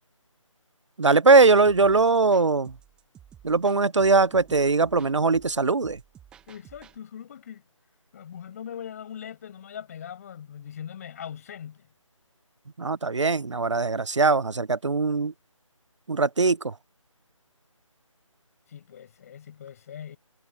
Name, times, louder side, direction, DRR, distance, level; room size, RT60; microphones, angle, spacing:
voice 1, 1.0-2.7 3.4-6.0 12.8-15.3 16.1-16.7, right 3 dB, 60° right, 0.9 m, -21 dB
sound 1, 1.6-7.0, right 9 dB, 5° right, 1.2 m, -53 dB
voice 2, 6.5-7.6 8.1-11.9 18.7-20.2, left 9 dB, 25° left, 7.1 m, -41 dB
figure-of-eight pair, 155°, 17 cm